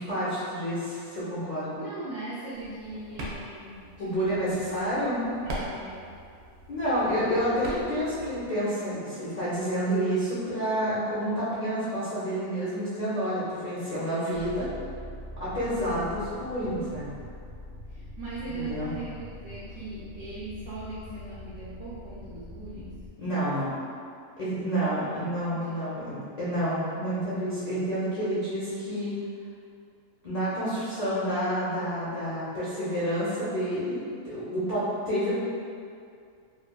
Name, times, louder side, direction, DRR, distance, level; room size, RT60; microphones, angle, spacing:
voice 1, 0.0-1.8 4.0-5.2 6.7-14.7 15.4-17.1 18.5-18.9 23.2-23.7 24.4-29.1 30.2-35.3, equal, 70° left, -11 dB, 0.3 m, -29 dB
voice 2, 1.7-4.5 5.4-6.1 17.9-23.0 25.0-25.9, right 2 dB, 65° right, -10 dB, 0.9 m, -40 dB
sound 1, 2.5-8.5, right 1 dB, 85° right, 1.1 m, -41 dB
sound 2, 14.3-23.1, left 1 dB, 40° right, 1.0 m, -43 dB
3.1 x 2.5 x 2.2 m, 2.4 s
omnidirectional pair, 1.6 m